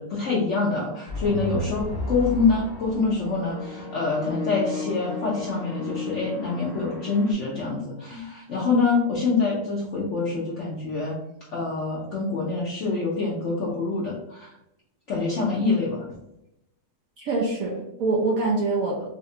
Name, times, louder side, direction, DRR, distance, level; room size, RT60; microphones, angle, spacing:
voice 1, 0.0-11.2 11.5-14.5 15.1-16.1, left 4 dB, 70° left, -3 dB, 0.7 m, -25 dB
sound 1, 1.1-7.3, left 3 dB, 40° right, 0.9 m, -33 dB
voice 2, 17.2-19.1, right 3 dB, 65° right, -2 dB, 0.8 m, -25 dB
4.1 x 2.0 x 2.7 m, 0.84 s
omnidirectional pair, 1.9 m